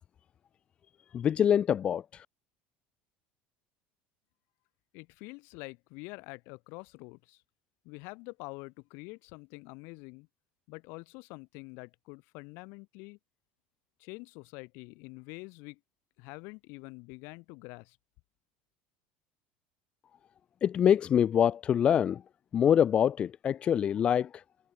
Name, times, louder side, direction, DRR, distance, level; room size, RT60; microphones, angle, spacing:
voice 1, 1.1-2.3 20.6-22.2 22.5-24.4, left 9 dB, 25° left, 0.5 m, -25 dB
voice 2, 4.9-7.4 7.8-10.3 10.7-13.2 14.0-15.8 16.2-18.0, left 29 dB, 55° left, 6.2 m, -46 dB
cardioid pair, 175°, 4 cm